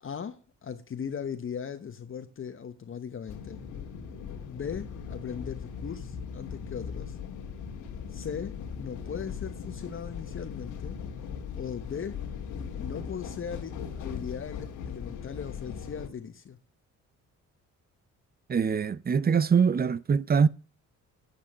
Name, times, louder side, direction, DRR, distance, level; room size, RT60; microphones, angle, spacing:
voice 1, 0.0-3.6 4.4-7.2 8.1-11.0 11.5-12.2 12.8-16.6, left 7 dB, 45° left, 1.1 m, -38 dB
sound 1, 3.3-16.1, left 6 dB, 85° left, 2.1 m, -39 dB
voice 2, 18.5-20.5, right 6 dB, 30° right, 0.7 m, -23 dB
9.2 x 8.2 x 5.5 m
cardioid pair, 90°, 30 cm